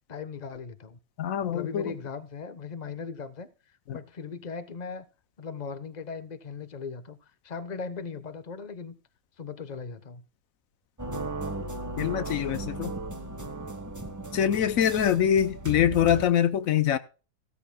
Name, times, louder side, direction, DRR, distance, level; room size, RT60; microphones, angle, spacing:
voice 1, 0.1-1.0 1.5-3.5 3.9-5.1 5.4-7.2 7.4-9.0 9.4-10.2 14.3-14.6, left 5 dB, 35° left, 1.0 m, -38 dB
voice 2, 1.2-2.0 3.9-4.0 12.0-12.9 14.3-17.0, left 9 dB, 80° left, 1.2 m, -24 dB
sound 1, 11.0-16.2, right 2 dB, 15° right, 1.2 m, -36 dB
15.5 x 13.5 x 2.2 m
omnidirectional pair, 1.4 m